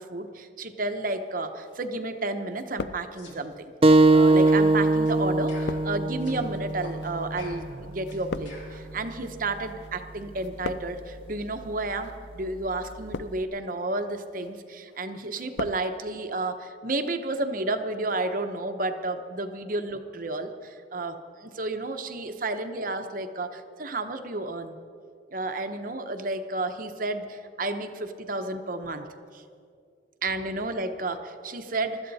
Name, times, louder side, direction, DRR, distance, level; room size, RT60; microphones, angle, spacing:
voice 1, 0.0-3.7 4.1-24.8 25.3-29.0 29.3-29.4 30.2-32.1, right 2 dB, 45° right, 7 dB, 0.9 m, -31 dB
sound 1, 1.6-2.2 2.5-3.5 4.3-9.9 10.2-11.2 11.9-12.2 12.8-13.6 14.1-14.5 14.9-15.9 16.1-16.2, left 4 dB, 65° left, 0.4 m, -39 dB
sound 2, 3.2-3.4 3.9-4.0 4.5-4.7 5.1-5.2 5.5-6.4 6.8-7.0 7.4-8.8, left 2 dB, 80° left, 3.9 m, -45 dB
sound 3, 3.8-9.0, right 2 dB, 30° right, 0.4 m, -22 dB
23.5 x 13.5 x 4.1 m, 2.3 s
head